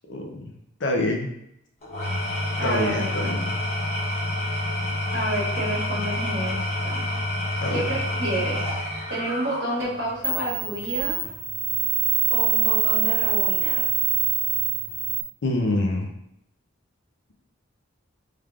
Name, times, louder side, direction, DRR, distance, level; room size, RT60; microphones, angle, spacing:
voice 1, 0.1-0.5 0.8-1.3 2.6-3.5 7.6-7.8 15.4-16.1, left 1 dB, 60° left, 2 dB, 0.5 m, -26 dB
Engine / Tools, 1.8-10.1, left 1 dB, 35° left, 0.9 m, -28 dB
voice 2, 2.6-3.3 5.1-7.1 7.7-8.8 9.1-11.2 12.3-13.9, right 1 dB, 55° right, -5 dB, 1.2 m, -30 dB
sound 1, 9.8-9.9 10.2-15.2, right 9 dB, 10° right, 0.5 m, -24 dB
3.5 x 3.2 x 2.3 m, 0.78 s
head